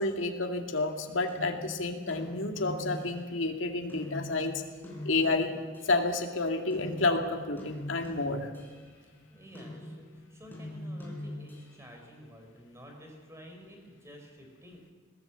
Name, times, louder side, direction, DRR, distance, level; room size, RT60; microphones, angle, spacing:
voice 1, 0.0-4.6 5.0-5.5 5.8-8.5, left 3 dB, 90° left, 4 dB, 2.2 m, -30 dB
sound 1, 0.7-3.5 3.9-6.3 6.7-12.0, left 1 dB, 10° left, 4.4 m, -43 dB
voice 2, 9.0-14.9, equal, 15° right, 2 dB, 4.5 m, -51 dB
20.5 x 18.0 x 8.1 m, 1.5 s
head